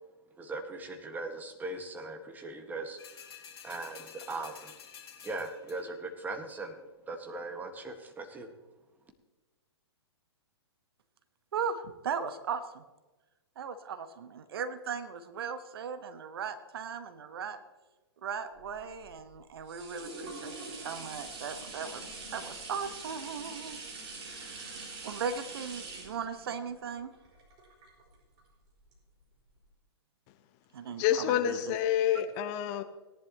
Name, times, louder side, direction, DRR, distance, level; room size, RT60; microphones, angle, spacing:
voice 1, 0.4-3.0 3.6-4.7 5.2-6.8 7.1-8.5, right 2 dB, 10° right, 5 dB, 1.7 m, -39 dB
sound 1, 3.0-6.0 6.5-6.6, left 7 dB, 60° left, 2.7 m, -50 dB
voice 2, 11.5-12.8 13.6-17.6 18.2-23.8 24.2-27.1 30.7-31.0 31.5-31.7, right 6 dB, 60° right, 10 dB, 1.3 m, -38 dB
sound 2, 18.6-28.4 28.9-29.0, right 3 dB, 35° right, 4.8 m, -44 dB
voice 3, 31.0-32.8, left 11 dB, 35° left, 9 dB, 1.0 m, -28 dB
18.5 x 11.0 x 3.0 m, 1.1 s
figure-of-eight pair, 115°, 14 cm